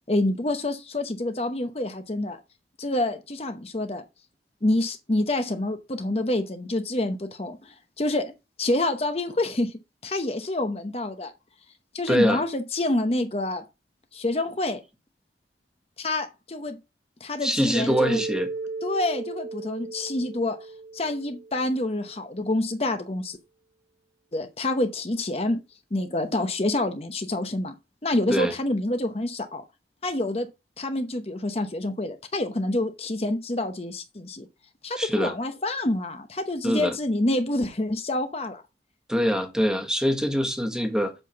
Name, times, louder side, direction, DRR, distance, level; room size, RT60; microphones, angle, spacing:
voice 1, 0.1-2.4 2.8-4.0 4.6-8.3 8.6-11.3 11.9-13.6 14.1-14.8 16.0-16.8 17.2-18.2 18.8-20.7 20.9-23.4 24.3-25.6 25.9-27.7 28.0-29.6 30.0-30.5 30.8-34.5 34.8-38.6, left 1 dB, 35° left, 0.8 m, -27 dB
voice 2, 12.1-12.4 17.4-18.5 28.3-28.5 35.0-35.3 36.6-37.0 39.1-41.1, equal, 5° right, 1.4 m, -24 dB
Mallet percussion, 17.9-22.0, right 3 dB, 70° right, 1.0 m, -35 dB
8.0 x 5.7 x 5.8 m
head